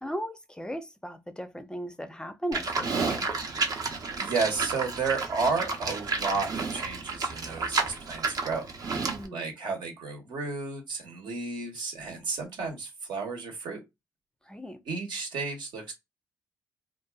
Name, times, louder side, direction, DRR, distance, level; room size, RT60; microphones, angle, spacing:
voice 1, 0.0-3.3 9.0-9.5 14.4-14.8, equal, 10° left, 0.5 m, -37 dB
Livestock farm animals working animals, 2.5-9.3, right 4 dB, 50° right, 0.7 m, -31 dB
voice 2, 3.7-8.6 9.3-13.8 14.9-15.9, right 4 dB, 75° right, 1.1 m, -32 dB
2.5 x 2.3 x 2.3 m
supercardioid pair, 60°, 8 cm